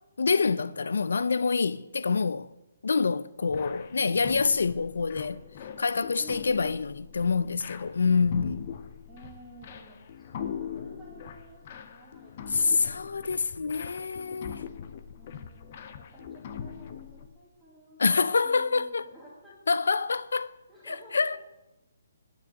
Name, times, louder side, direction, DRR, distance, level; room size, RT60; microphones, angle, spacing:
voice 1, 0.2-2.5 2.8-5.4 5.8-8.7 12.5-14.6 18.0-19.1 19.7-20.6 20.9-21.4, left 4 dB, 80° left, 0.4 m, -26 dB
sound 1, 3.5-17.3, left 7 dB, 25° left, 0.5 m, -41 dB
voice 2, 6.2-6.8 9.1-13.3 15.2-18.1 18.4-19.8 20.7-21.4, equal, ahead, 1.4 m, -52 dB
10.0 x 7.6 x 7.5 m
hypercardioid pair, 180°, 0 cm